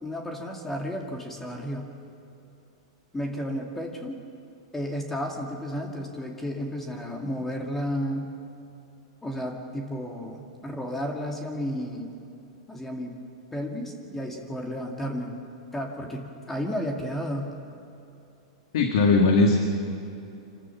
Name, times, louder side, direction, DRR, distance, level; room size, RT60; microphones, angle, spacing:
voice 1, 0.0-1.9 3.1-4.2 4.7-8.3 9.2-12.1 12.7-13.1 13.5-15.3 15.7-17.5, equal, 10° left, 1 dB, 2.2 m, -32 dB
voice 2, 18.7-19.6, left 3 dB, 70° left, 2 dB, 2.0 m, -19 dB
27.0 x 13.5 x 7.3 m, 2.8 s
hypercardioid pair, 125°, 3 cm